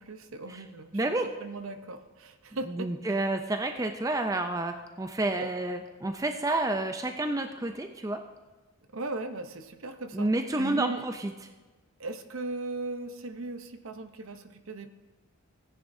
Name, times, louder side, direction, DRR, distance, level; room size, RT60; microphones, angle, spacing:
voice 1, 0.0-0.9 1.2-3.2 5.4-5.5 8.9-10.3 10.6-11.0 12.0-14.9, right 2 dB, 70° right, 8 dB, 0.8 m, -38 dB
voice 2, 0.9-1.3 2.7-8.2 10.1-11.3, right 2 dB, 15° right, 6 dB, 0.4 m, -29 dB
17.0 x 9.9 x 2.7 m, 1.3 s
head